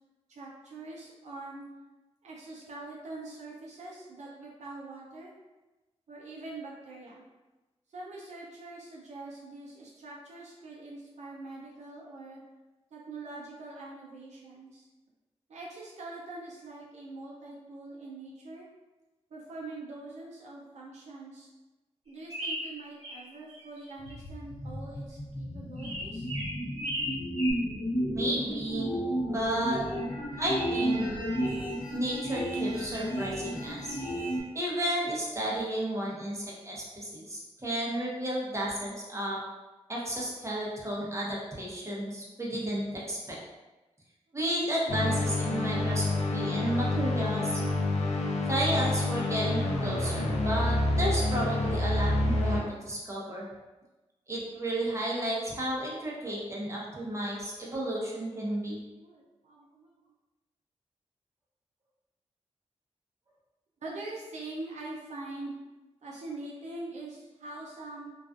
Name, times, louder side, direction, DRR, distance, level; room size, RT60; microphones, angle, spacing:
voice 1, 0.3-1.6 2.2-5.3 6.1-7.2 7.9-12.4 12.9-14.9 15.5-18.7 19.3-21.5 22.1-26.3 58.9-60.1 63.8-65.5 66.0-68.1, right 2 dB, 75° right, -3 dB, 0.4 m, -43 dB
sound 1, 22.3-23.2 23.5-24.1 25.8-27.5, equal, 50° right, 1.1 m, -36 dB
sound 2, 24.0-34.4, equal, 35° left, 0.9 m, -33 dB
voice 2, 28.1-28.9 29.2-29.8 30.4-31.0 31.9-34.0 34.5-39.4 39.9-43.4 44.3-46.0 46.3-47.6 48.5-53.5 54.3-58.8, right 1 dB, 25° right, -4 dB, 0.8 m, -32 dB
sound 3, 44.9-52.6, left 2 dB, 65° left, 0.5 m, -28 dB
2.3 x 2.3 x 2.4 m, 1.1 s
cardioid pair, 45°, 12 cm